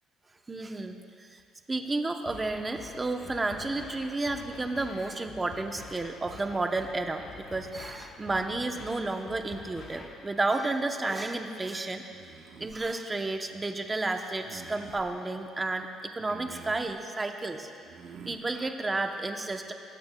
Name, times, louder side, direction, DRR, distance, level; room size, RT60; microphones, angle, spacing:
voice 1, 0.5-1.4 1.7-12.0 12.6-17.7 18.2-19.7, right 2 dB, 15° right, 5 dB, 0.7 m, -32 dB
sound 1, 2.3-10.3, left 4 dB, 45° left, 1.2 m, -48 dB
sound 2, 12.1-12.8 14.4-15.1 16.2-16.9 17.8-18.4, right 6 dB, 55° right, 1.0 m, -47 dB
21.0 x 15.0 x 2.2 m, 2.4 s
cardioid pair, 150°, 0 cm